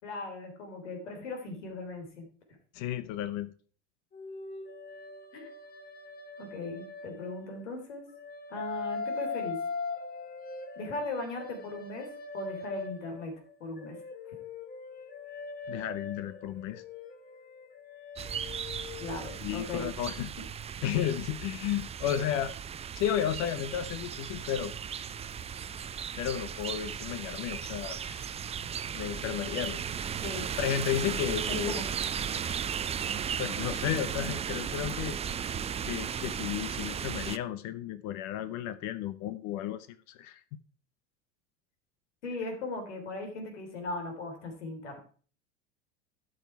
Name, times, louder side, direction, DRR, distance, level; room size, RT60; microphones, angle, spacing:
voice 1, 0.0-2.3 5.3-5.5 6.4-8.1 8.5-9.6 10.8-13.3 13.6-14.0 19.0-19.9 30.2-30.5 31.5-31.9 34.2-34.3 42.2-45.0, left 2 dB, 75° left, 4 dB, 3.5 m, -38 dB
voice 2, 2.7-3.5 15.7-16.8 19.4-20.3 20.8-22.5 22.9-24.7 26.2-28.3 28.9-29.8 30.6-31.7 33.4-35.2 35.8-40.6, left 10 dB, 50° left, 13 dB, 0.9 m, -33 dB
sound 1, 4.1-7.7 8.1-13.3 13.8-19.3, left 4 dB, 25° left, 1.5 m, -41 dB
sound 2, 18.2-37.4, right 8 dB, 20° right, 0.5 m, -36 dB
12.0 x 6.5 x 4.7 m, 0.42 s
hypercardioid pair, 80°, 36 cm